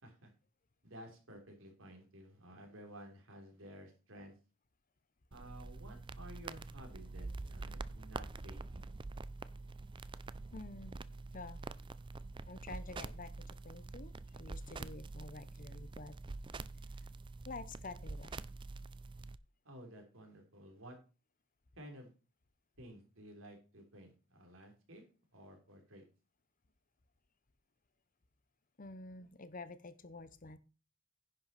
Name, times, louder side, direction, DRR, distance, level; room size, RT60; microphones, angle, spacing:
voice 1, 0.8-4.3 5.3-8.9 19.6-21.0 21.8-22.1 22.8-25.0 25.3-26.0, equal, 80° right, 3 dB, 3.5 m, -54 dB
sound 1, 5.3-19.4, right 3 dB, 25° right, 0.4 m, -46 dB
voice 2, 10.5-11.0 11.3-11.6 12.5-16.2 17.0-17.1 17.4-18.4 28.8-30.6, left 3 dB, 40° left, 14 dB, 0.8 m, -49 dB
10.5 x 5.9 x 5.8 m, 0.33 s
head